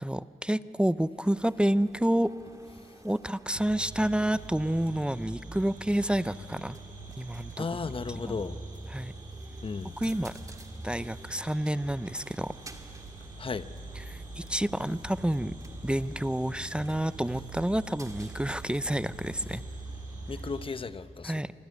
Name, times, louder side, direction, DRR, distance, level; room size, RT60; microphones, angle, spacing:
voice 1, 0.0-2.3 3.0-6.8 7.2-7.7 8.2-8.4 8.9-9.1 10.0-10.3 10.8-12.5 14.0-15.5 15.8-19.6 21.2-21.5, right 1 dB, 5° right, 15 dB, 0.5 m, -29 dB
sound 1, 1.2-20.8, right 2 dB, 25° right, 2.3 m, -54 dB
sound 2, 3.5-20.7, right 2 dB, 75° right, 6.4 m, -44 dB
voice 2, 7.6-8.6 9.6-10.0 13.4-13.7 20.3-21.3, left 4 dB, 40° left, 12 dB, 0.9 m, -34 dB
24.5 x 24.0 x 9.7 m, 2.9 s
cardioid pair, 70°, 14 cm